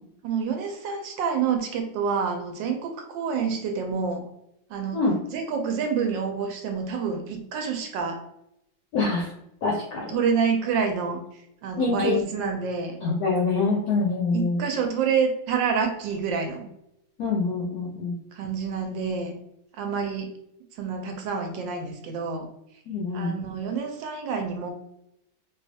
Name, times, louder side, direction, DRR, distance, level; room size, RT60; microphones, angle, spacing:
voice 1, 0.2-4.2 4.7-5.0 5.3-8.2 10.1-11.2 11.6-13.0 14.3-16.7 18.3-19.3 19.7-20.3 20.7-22.5 23.1-24.7, right 6 dB, 75° right, 4 dB, 1.2 m, -27 dB
voice 2, 8.9-9.3 9.6-10.2 11.8-12.2 13.0-14.7 17.2-18.2 22.9-23.4, left 3 dB, 70° left, -2 dB, 0.9 m, -25 dB
4.5 x 2.3 x 2.6 m, 0.81 s
omnidirectional pair, 2.2 m